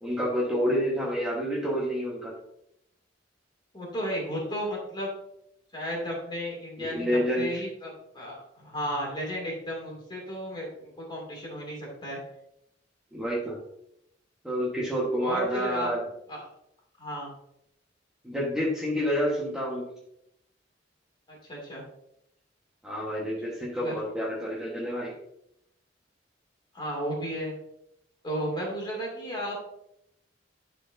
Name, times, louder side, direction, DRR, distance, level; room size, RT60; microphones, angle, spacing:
voice 1, 0.0-2.3 6.8-7.5 13.1-13.5 14.4-16.0 18.2-19.9 22.8-25.1, equal, 5° right, -7 dB, 1.3 m, -28 dB
voice 2, 3.7-5.1 5.7-12.2 15.2-15.9 16.3-16.4 17.0-17.3 21.3-21.8 23.8-23.9 26.7-27.5 28.2-29.6, equal, 25° left, -3 dB, 2.6 m, -34 dB
11.0 x 4.5 x 2.7 m, 0.78 s
head